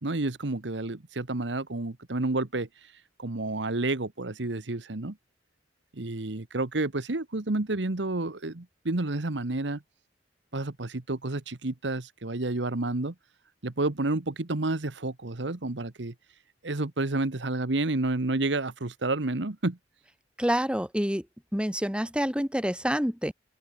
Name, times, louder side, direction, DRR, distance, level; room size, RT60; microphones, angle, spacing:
voice 1, 0.0-2.9 3.2-5.2 5.9-9.8 10.5-13.1 13.6-16.1 16.6-19.8, right 2 dB, 75° right, 1.4 m, -30 dB
voice 2, 20.4-21.2 21.5-23.3, equal, 5° right, 6.4 m, -27 dB
open air
head